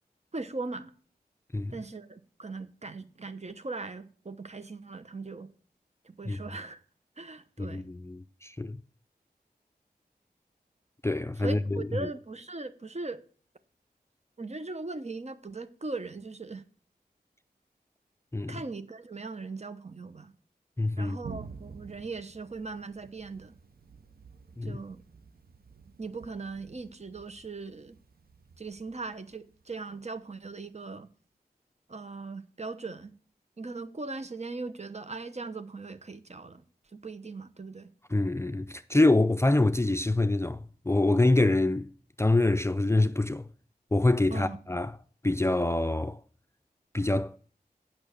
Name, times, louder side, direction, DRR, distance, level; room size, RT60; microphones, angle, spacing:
voice 1, 0.3-0.9 1.7-5.5 6.0-6.8 7.2-7.8 11.4-13.2 14.4-16.6 18.5-20.3 21.0-23.6 24.6-25.0 26.0-28.0 28.6-31.1 31.9-33.1 33.6-36.6 36.9-37.9 44.3-44.6, right 3 dB, 45° right, 0.9 m, -39 dB
voice 2, 7.6-8.8 11.0-12.1 18.3-18.6 20.8-21.2 24.6-24.8 38.1-41.9 42.2-43.5 43.9-45.0 45.2-46.2 46.9-47.4, left 2 dB, 15° left, 0.4 m, -25 dB
Thunder, 21.2-30.6, right 5 dB, 70° right, 0.7 m, -50 dB
8.9 x 6.0 x 6.5 m
wide cardioid pair, 60°, 16 cm